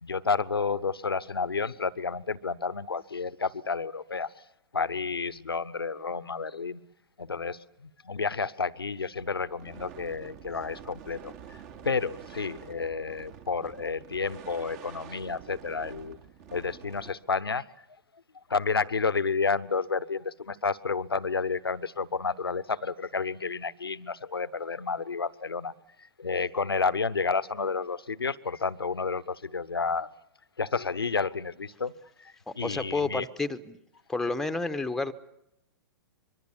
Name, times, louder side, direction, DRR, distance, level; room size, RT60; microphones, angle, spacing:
voice 1, 0.0-4.3 4.7-6.8 7.2-11.3 11.8-16.2 16.5-17.6 18.5-25.7 26.2-30.1 30.6-31.9 32.2-33.3, left 4 dB, 80° left, 18 dB, 1.0 m, -30 dB
sound 1, 9.1-17.1, right 8 dB, 40° right, 2.6 m, -47 dB
voice 2, 32.5-33.8 34.1-35.1, left 3 dB, 5° left, 9 dB, 1.1 m, -30 dB
25.0 x 23.0 x 7.2 m, 0.81 s
figure-of-eight pair, 110°, 12 cm